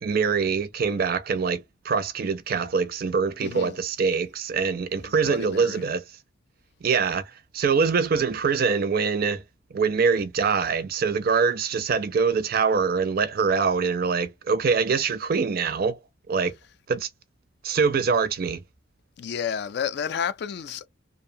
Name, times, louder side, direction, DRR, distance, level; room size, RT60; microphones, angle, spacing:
voice 1, 0.0-6.0 6.8-9.4 9.7-16.0 16.3-16.5 16.9-17.1 17.6-18.6, right 5 dB, 50° right, 0.4 m, -24 dB
voice 2, 3.4-3.8 4.9-5.8 19.2-20.9, left 7 dB, 60° left, 0.3 m, -31 dB
2.5 x 2.0 x 2.5 m
head